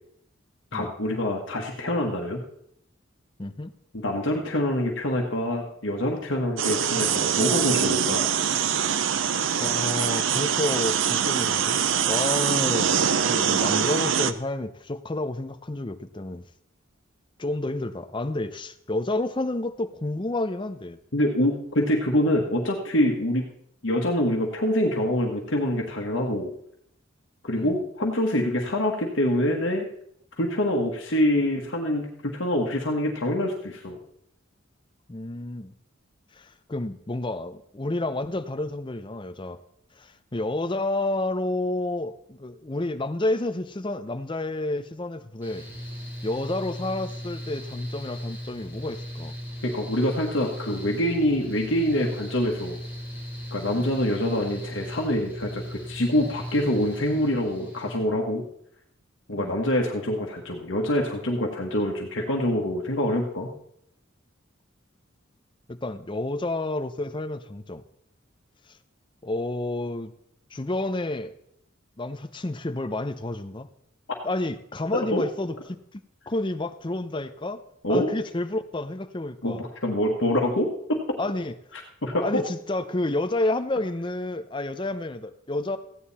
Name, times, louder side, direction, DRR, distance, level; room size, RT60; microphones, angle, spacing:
voice 1, 0.7-2.4 3.9-8.3 21.1-23.4 23.8-26.5 27.4-29.9 30.4-34.0 49.6-52.8 53.5-58.4 59.3-63.5 75.1-75.2 77.8-78.1 79.4-81.2 82.0-82.4, left 1 dB, 65° left, 0 dB, 1.5 m, -25 dB
voice 2, 3.4-3.7 9.6-16.5 17.4-21.0 27.5-27.7 35.1-35.7 36.3-39.6 39.9-45.7 46.2-49.3 53.7-53.9 59.4-59.6 65.7-67.8 68.7-68.8 69.2-70.1 70.5-71.4 72.0-73.7 74.2-75.6 75.9-77.6 77.9-79.6 81.2-81.5 82.2-85.8, left 2 dB, 25° left, 10 dB, 0.7 m, -30 dB
sound 1, 6.6-14.3, right 8 dB, 70° right, 0.6 m, -24 dB
Mechanical fan, 45.4-58.0, equal, 10° right, 3.3 m, -37 dB
15.0 x 9.4 x 4.2 m, 0.70 s
head